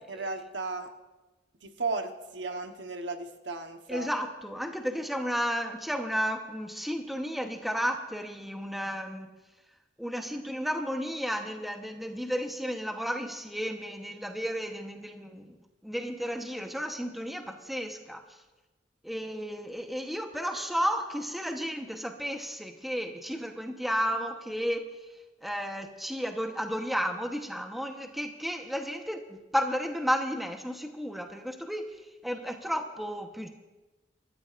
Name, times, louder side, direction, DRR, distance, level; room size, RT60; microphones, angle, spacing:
voice 1, 0.1-0.9 1.6-4.1, right 3 dB, 70° right, 5 dB, 1.2 m, -35 dB
voice 2, 3.9-9.3 10.0-15.6 15.8-18.2 19.0-24.8 25.4-31.9 32.2-33.5, equal, ahead, 4 dB, 1.0 m, -33 dB
25.5 x 13.5 x 2.5 m, 1.1 s
head